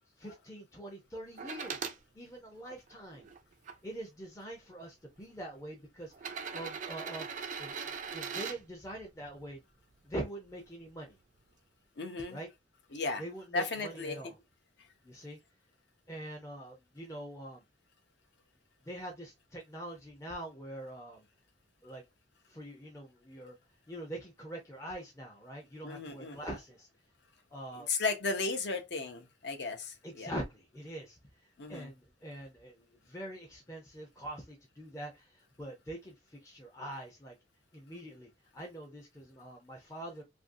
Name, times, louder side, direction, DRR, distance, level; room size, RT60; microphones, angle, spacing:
voice 1, 0.2-1.9 2.1-3.3 3.8-7.3 7.6-7.7 8.1-9.6 10.0-11.2 12.3-12.5 13.2-14.3 15.0-15.4 16.1-17.6 18.9-21.3 21.8-22.0 22.5-23.6 23.9-26.9 27.5-27.9 30.0-31.2 31.7-37.3 37.7-40.2, right 1 dB, 15° left, 0.5 m, -44 dB
sound 1, 1.4-2.0 2.7-3.7 4.7-4.8 6.1-8.6 10.5-10.6, right 6 dB, 40° right, 0.4 m, -40 dB
voice 2, 12.0-12.4 12.9-13.2 13.5-14.2 25.8-26.4 27.7-30.3 31.6-31.9, left 3 dB, 65° left, 0.6 m, -35 dB
2.6 x 2.5 x 2.6 m
head